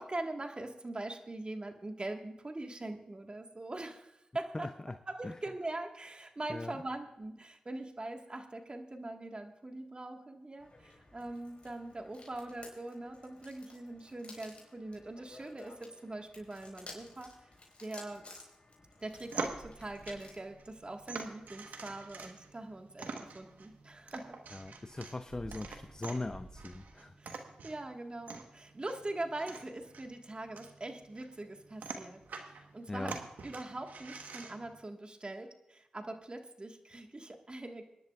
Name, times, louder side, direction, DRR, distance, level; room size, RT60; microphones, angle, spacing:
voice 1, 0.0-4.7 5.1-15.7 16.0-17.3 17.8-18.2 19.0-24.3 27.2-27.4 27.6-32.2 32.5-37.8, right 2 dB, 35° right, 4 dB, 1.6 m, -42 dB
voice 2, 4.5-5.0 5.2-5.3 6.5-6.8 24.5-27.1 32.9-33.2, left 2 dB, 25° left, 10 dB, 0.5 m, -40 dB
sound 1, 10.6-20.5, left 2 dB, 45° left, 4.6 m, -55 dB
sound 2, 19.0-34.8, right 4 dB, 80° right, 1.2 m, -46 dB
sound 3, 19.4-26.9, right 2 dB, 55° right, 1.0 m, -58 dB
25.5 x 10.5 x 2.4 m, 0.86 s
supercardioid pair, 40°, 3 cm